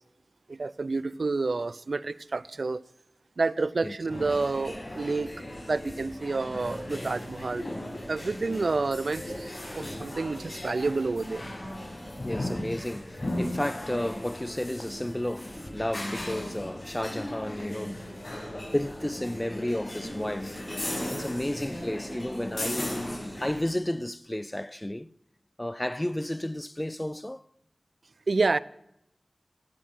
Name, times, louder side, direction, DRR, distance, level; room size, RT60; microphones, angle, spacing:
voice 1, 0.5-2.8 3.4-7.6 8.1-11.5 28.3-28.6, right 3 dB, 80° right, 0.4 m, -29 dB
sound 1, 4.1-23.6, left 1 dB, 40° left, 7.1 m, -37 dB
voice 2, 12.2-18.0 18.5-20.6 21.1-25.1 25.6-27.4, left 1 dB, 15° left, 0.4 m, -32 dB
18.0 x 10.0 x 6.3 m
wide cardioid pair, 75°, 0 cm